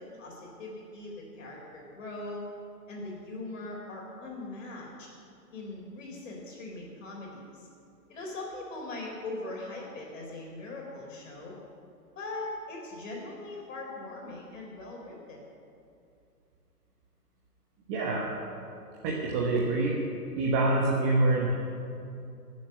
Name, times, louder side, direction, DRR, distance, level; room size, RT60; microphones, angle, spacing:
voice 1, 0.0-2.5 2.9-5.1 5.5-7.7 8.1-11.6 12.2-15.4, left 2 dB, 50° left, -2 dB, 3.9 m, -40 dB
voice 2, 17.9-18.3 19.2-20.0 20.3-21.5, right 2 dB, 20° right, -2 dB, 1.2 m, -26 dB
12.5 x 7.5 x 9.7 m, 2.5 s
figure-of-eight pair, 135°, 48 cm